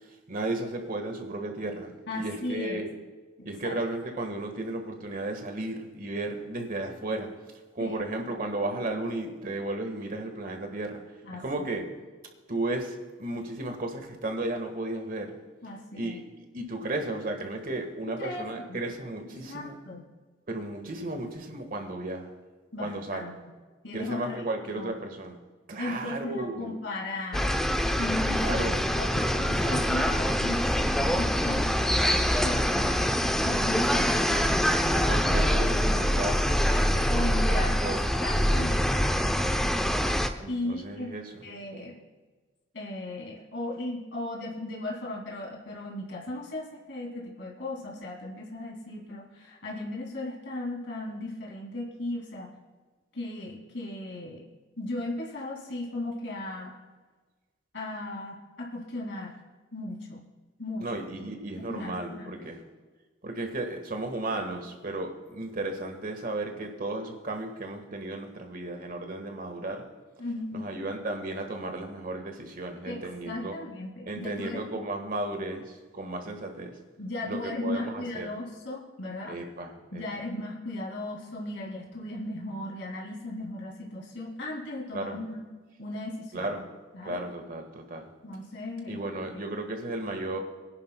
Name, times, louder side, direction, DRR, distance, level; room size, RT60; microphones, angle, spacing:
voice 1, 0.3-2.9 3.4-7.3 7.7-11.0 11.3-11.8 12.5-15.3 15.9-16.2 16.5-19.8 20.5-22.3 22.8-23.2 23.9-25.4 25.7-26.7 28.4-28.8 34.9-37.0 37.5-38.0 40.4-41.3 60.8-62.6 63.2-69.8 70.5-73.5 74.1-76.7 77.3-78.3 79.3-80.0 84.9-85.2 86.3-86.6 87.0-88.1 88.9-90.4, right 2 dB, 50° right, 4 dB, 1.6 m, -34 dB
voice 2, 2.1-2.9 3.6-3.8 7.8-8.0 11.2-11.6 15.6-16.2 18.2-18.8 19.5-20.1 22.7-23.5 23.8-24.4 24.7-25.1 25.8-27.6 28.0-28.6 28.9-34.9 36.7-37.9 38.2-40.2 40.5-41.1 41.4-41.9 42.7-52.5 53.1-54.5 54.8-56.8 57.7-59.4 59.7-60.2 60.6-61.0 61.6-62.5 70.2-70.7 72.8-74.7 77.0-79.4 79.9-85.4 85.8-86.5 86.9-87.2 88.2-89.6, left 2 dB, 70° left, -2 dB, 2.6 m, -37 dB
sound 1, 27.3-40.3, equal, 5° left, 0.6 m, -25 dB
23.5 x 10.5 x 2.3 m, 1.3 s
head